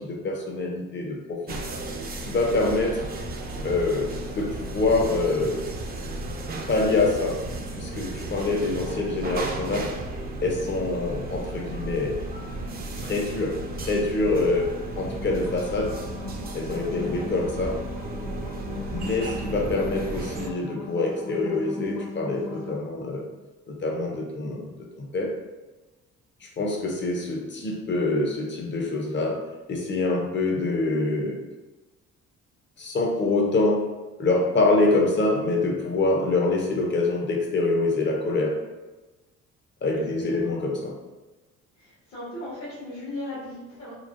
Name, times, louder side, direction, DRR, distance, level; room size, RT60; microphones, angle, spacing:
voice 1, 0.0-1.6 2.3-3.1 3.6-5.7 6.7-7.5 7.8-10.0 10.4-12.2 13.0-16.0 16.5-17.8 18.9-23.3 23.7-25.3 26.4-31.4 32.8-33.9 34.2-38.6 39.8-41.0, left 2 dB, 40° left, 1 dB, 0.6 m, -25 dB
sound 1, 1.5-20.5, right 2 dB, 30° right, 0.4 m, -34 dB
sound 2, 14.8-22.8, left 3 dB, 85° left, 0.7 m, -39 dB
voice 2, 16.8-17.2 39.9-40.4 41.8-44.0, left 1 dB, 65° left, -9 dB, 1.2 m, -37 dB
3.2 x 2.1 x 2.4 m, 1.2 s
cardioid pair, 90°, 30 cm